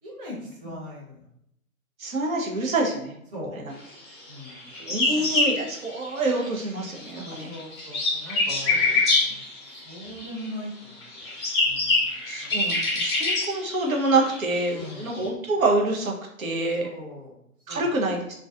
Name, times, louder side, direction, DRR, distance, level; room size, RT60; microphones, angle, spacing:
voice 1, 0.0-1.3 3.3-3.5 4.3-4.7 5.1-5.4 7.0-11.3 11.6-12.1 14.7-15.2 16.7-17.3 17.7-18.0, left 1 dB, 40° right, -5 dB, 1.0 m, -40 dB
voice 2, 2.0-3.1 4.8-7.5 8.5-8.6 12.3-16.1 16.4-16.9 17.7-18.2, right 2 dB, 75° right, 0 dB, 0.7 m, -26 dB
sound 1, 4.4-6.6 6.9-10.5 11.0-15.3, left 3 dB, 20° left, 0.5 m, -26 dB
2.4 x 2.2 x 2.3 m, 0.75 s
figure-of-eight pair, 120°, 42 cm